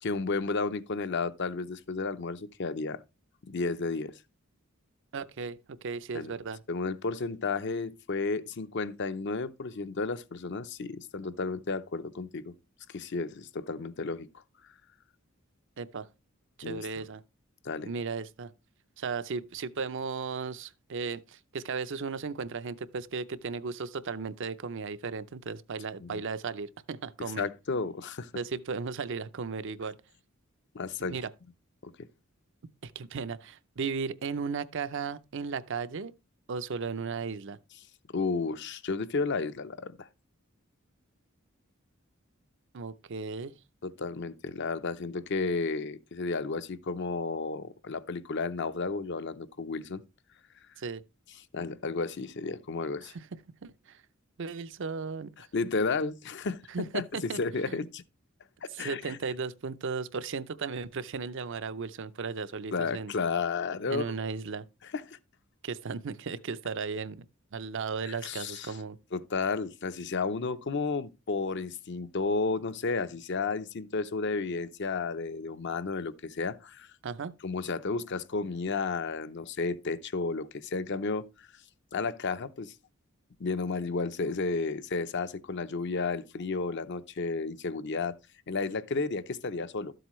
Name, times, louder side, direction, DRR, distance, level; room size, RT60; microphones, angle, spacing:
voice 1, 0.0-3.0 3.5-4.1 6.1-6.4 6.7-12.5 12.9-14.3 16.6-16.8 17.6-17.9 26.0-26.2 27.4-28.3 30.7-31.1 31.8-32.1 38.1-40.1 43.8-50.0 51.5-53.1 55.4-56.6 56.9-58.0 58.6-59.2 62.7-64.3 64.9-65.2 68.1-68.7 69.1-76.9 77.4-81.3 81.9-82.7 83.4-88.1 88.5-89.9, left 4 dB, 60° left, 0.7 m, -32 dB
voice 2, 5.1-6.6 15.8-16.1 16.6-17.2 17.8-18.5 19.0-27.5 28.4-30.0 31.1-31.3 32.8-36.1 36.5-37.6 42.7-43.6 50.8-51.0 53.0-53.3 53.6-54.0 54.4-55.3 56.7-57.4 57.7-57.8 58.7-63.1 63.9-64.6 65.6-67.2 67.5-69.0 77.0-77.3, right 5 dB, 60° right, 0.6 m, -35 dB
12.5 x 7.8 x 3.1 m
head